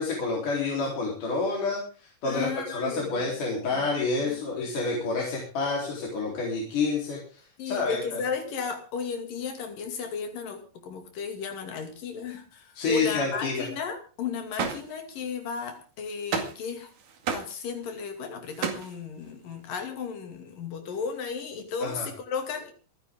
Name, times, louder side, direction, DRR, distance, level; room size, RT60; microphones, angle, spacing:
voice 1, 0.0-1.8 2.2-8.2 12.8-13.7 21.8-22.1, left 3 dB, 70° left, 5.5 m, -28 dB
voice 2, 2.3-3.9 4.2-4.4 7.6-16.9 17.3-22.7, left 6 dB, 90° left, 4.2 m, -34 dB
sound 1, 14.5-14.8 15.6-15.7 16.3-16.7 17.0-17.5 17.9-18.0 18.2-18.9, right 6 dB, 80° right, 3.9 m, -31 dB
26.5 x 10.0 x 3.8 m
omnidirectional pair, 3.8 m